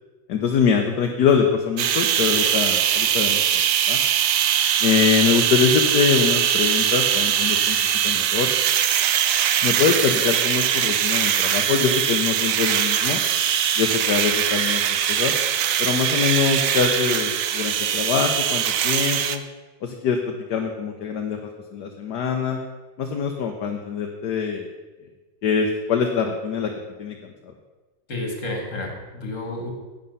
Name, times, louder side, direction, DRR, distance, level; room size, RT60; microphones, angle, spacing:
voice 1, 0.3-3.4 3.9-4.0 4.8-7.8 8.0-8.5 9.6-13.2 13.8-15.3 15.8-19.4 19.8-22.6 23.0-24.7 25.4-26.7 27.0-27.2 27.4-27.5, left 6 dB, 65° left, 3 dB, 1.4 m, -23 dB
sound 1, 1.8-19.4, right 9 dB, 70° right, 0.8 m, -21 dB
voice 2, 28.1-29.7, left 2 dB, 40° left, 2 dB, 2.4 m, -30 dB
11.5 x 8.7 x 5.5 m, 1.2 s
omnidirectional pair, 2.1 m